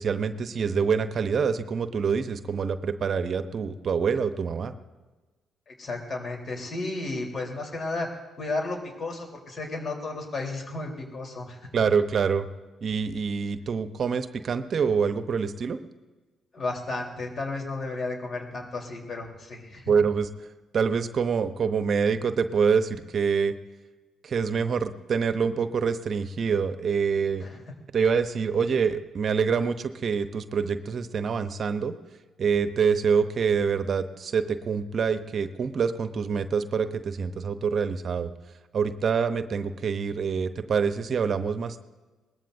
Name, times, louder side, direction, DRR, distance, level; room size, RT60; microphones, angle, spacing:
voice 1, 0.0-4.7 11.7-12.5 12.8-15.8 19.9-20.3 20.7-23.5 24.2-27.4 27.9-31.9 32.4-38.3 38.7-41.8, right 6 dB, 50° right, 11 dB, 0.8 m, -26 dB
voice 2, 5.8-8.1 8.4-11.6 16.5-19.9 27.4-27.6, left 2 dB, 45° left, 1 dB, 3.8 m, -33 dB
22.0 x 19.5 x 2.7 m, 1.2 s
hypercardioid pair, 45°, 0 cm